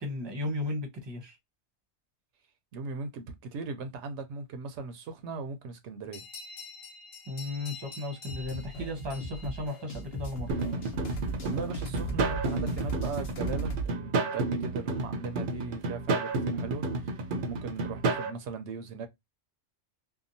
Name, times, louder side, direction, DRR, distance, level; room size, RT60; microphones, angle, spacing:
voice 1, 0.0-1.3 7.3-10.5, left 2 dB, 25° right, 0.8 m, -35 dB
voice 2, 2.7-6.2 11.4-19.1, right 4 dB, 80° right, 0.9 m, -39 dB
sound 1, 6.1-10.4, left 4 dB, 30° left, 0.7 m, -47 dB
sound 2, 8.3-13.9, right 3 dB, 60° left, 1.0 m, -37 dB
sound 3, 10.5-18.3, right 3 dB, 55° right, 0.7 m, -31 dB
2.8 x 2.2 x 2.6 m
omnidirectional pair, 1.2 m